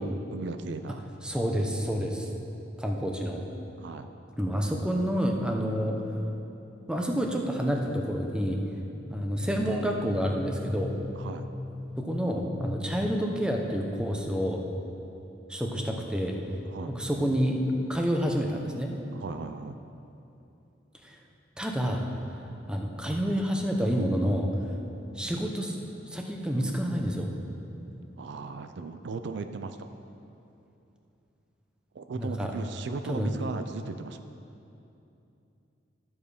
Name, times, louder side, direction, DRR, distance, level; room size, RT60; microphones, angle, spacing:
voice 1, 0.0-1.0 3.8-4.1 11.1-11.5 16.7-16.9 19.1-19.8 28.2-29.9 31.9-34.2, right 4 dB, 65° right, 8 dB, 0.4 m, -37 dB
voice 2, 1.2-2.3 2.8-3.4 4.4-6.0 6.9-8.6 9.1-10.9 12.0-14.6 15.5-16.3 16.9-17.6 17.9-18.9 21.0-21.2 21.6-22.0 22.7-24.5 25.2-25.8 26.1-27.3 32.2-32.5 33.1-33.3, equal, 5° right, 1 dB, 0.8 m, -28 dB
sound 1, 8.7-13.7, left 2 dB, 20° left, 0.4 m, -40 dB
13.0 x 7.1 x 5.0 m, 2.8 s
head